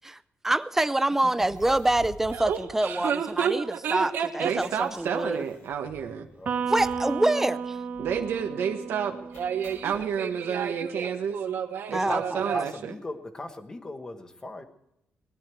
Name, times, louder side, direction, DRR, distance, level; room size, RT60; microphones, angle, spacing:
voice 1, 0.4-5.4 6.7-7.8 11.9-12.4, right 1 dB, 10° right, 15 dB, 0.4 m, -26 dB
sound 1, 1.3-3.6 3.9-4.0 4.1-6.2 6.7-7.2 7.4-7.5 7.9-8.4 9.3-10.1, left 2 dB, 80° left, 2.6 m, -49 dB
voice 2, 2.4-4.7 9.3-12.7, right 8 dB, 65° right, 6 dB, 1.3 m, -31 dB
voice 3, 4.4-6.3 8.0-9.2 9.8-11.4 11.9-12.9, right 7 dB, 85° right, 3 dB, 1.3 m, -30 dB
Electric guitar, 6.5-10.0, right 6 dB, 45° right, 1.7 m, -33 dB
voice 4, 12.5-14.6, left 2 dB, 15° left, 7 dB, 1.2 m, -37 dB
19.5 x 11.0 x 4.5 m, 0.83 s
wide cardioid pair, 170°, 4 cm